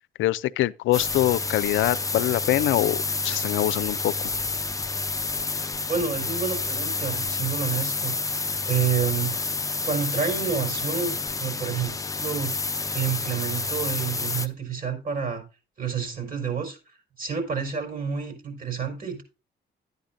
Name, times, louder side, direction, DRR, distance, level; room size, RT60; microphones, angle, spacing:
voice 1, 0.2-4.1, left 15 dB, 80° left, 0.5 m, -24 dB
sound 1, 0.9-14.5, left 3 dB, 15° left, 0.6 m, -29 dB
voice 2, 5.9-9.4 9.8-12.5 12.9-15.4 15.8-16.8 17.2-19.2, right 7 dB, 45° right, 4.7 m, -29 dB
11.5 x 9.4 x 2.6 m
cardioid pair, 90°, 20 cm